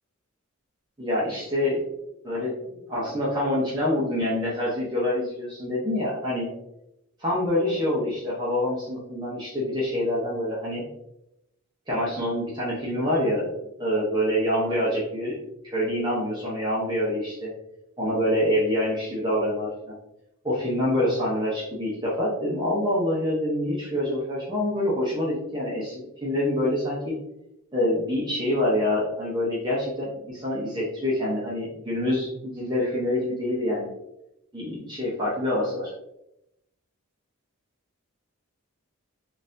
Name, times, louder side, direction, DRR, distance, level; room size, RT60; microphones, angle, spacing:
voice 1, 1.0-1.8 2.2-6.5 7.2-10.9 11.9-13.5 13.8-15.4 15.6-17.5 18.0-19.9 20.4-27.2 27.7-33.9 34.5-35.9, left 1 dB, 20° right, -7 dB, 0.7 m, -26 dB
3.9 x 2.5 x 2.6 m, 0.85 s
head